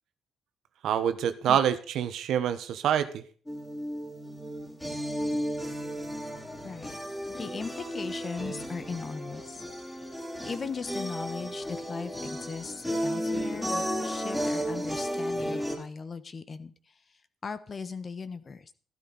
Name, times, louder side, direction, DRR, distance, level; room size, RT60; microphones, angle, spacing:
voice 1, 0.8-3.2, right 9 dB, 75° right, 11 dB, 1.1 m, -26 dB
sound 1, 3.5-15.8, equal, 5° left, 3.4 m, -34 dB
voice 2, 6.6-7.0 7.4-9.6 10.0-10.1 10.4-18.7, left 5 dB, 40° left, 12 dB, 1.2 m, -38 dB
13.5 x 12.5 x 4.1 m, 0.43 s
cardioid pair, 90°, 0 cm